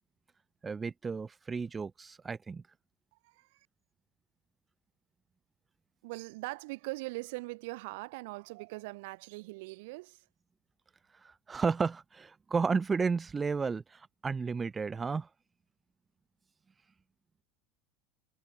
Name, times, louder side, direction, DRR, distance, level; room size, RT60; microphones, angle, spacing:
voice 1, 0.6-2.6 11.2-15.3, right 5 dB, 15° right, 0.5 m, -32 dB
voice 2, 3.2-3.7 6.0-10.2, right 24 dB, 75° right, 0.7 m, -41 dB
supercardioid pair, 150°, 0 cm